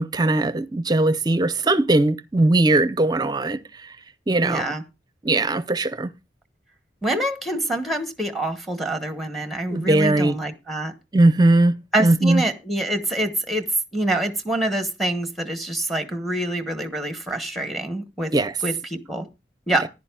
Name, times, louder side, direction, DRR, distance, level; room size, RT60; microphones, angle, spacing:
voice 1, 0.0-3.9 4.3-4.6 5.2-6.1 9.7-10.4 11.1-11.7 12.0-12.4 18.3-18.5, right 2 dB, 25° right, 0.6 m, -19 dB
voice 2, 4.4-4.8 7.0-10.9 11.9-18.3 18.6-19.3 19.7-19.9, right 1 dB, ahead, 1.0 m, -26 dB
14.5 x 10.5 x 2.3 m
head